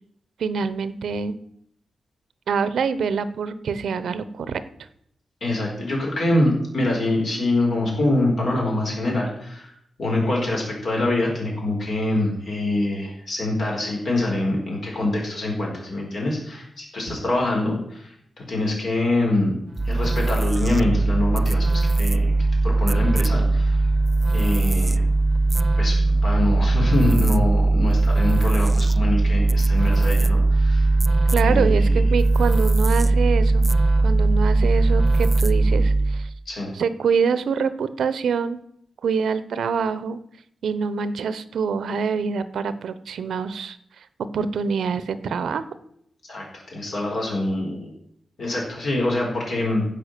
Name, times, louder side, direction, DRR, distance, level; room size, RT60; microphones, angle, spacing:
voice 1, 0.4-1.4 2.5-4.6 31.3-33.7 34.0-36.3 36.7-38.6 39.0-40.2 40.6-43.8 44.3-45.7, right 6 dB, 85° right, 13 dB, 0.8 m, -25 dB
voice 2, 5.4-19.5 19.8-22.3 22.6-23.9 24.3-25.0 25.8-31.0 31.4-32.0 36.5-36.7 46.3-46.4 46.7-47.9 48.4-49.8, left 2 dB, 55° left, -1 dB, 4.5 m, -25 dB
sound 1, 19.8-36.3, right 2 dB, 20° right, 0.3 m, -19 dB
15.0 x 5.7 x 6.7 m, 0.72 s
wide cardioid pair, 145°, 0 cm